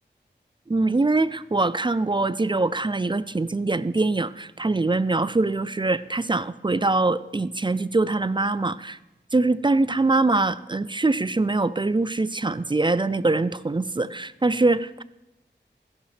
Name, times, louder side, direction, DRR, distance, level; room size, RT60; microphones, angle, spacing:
voice 1, 0.7-9.0 9.3-15.0, right 3 dB, 25° right, 16 dB, 0.4 m, -23 dB
15.0 x 11.0 x 3.4 m, 0.94 s
wide cardioid pair, 60°, 19 cm